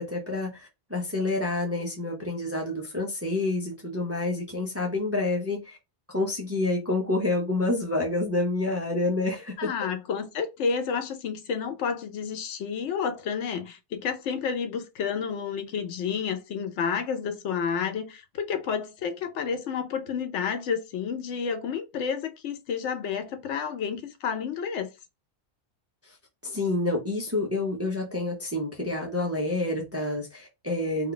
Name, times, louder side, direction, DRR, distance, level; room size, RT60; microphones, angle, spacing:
voice 1, 0.0-5.8 6.1-9.7 26.1-26.2 26.4-31.1, left 2 dB, 20° right, 0.4 m, -28 dB
voice 2, 9.6-24.9, left 6 dB, 85° left, 0.9 m, -30 dB
2.4 x 2.2 x 3.8 m
omnidirectional pair, 1.2 m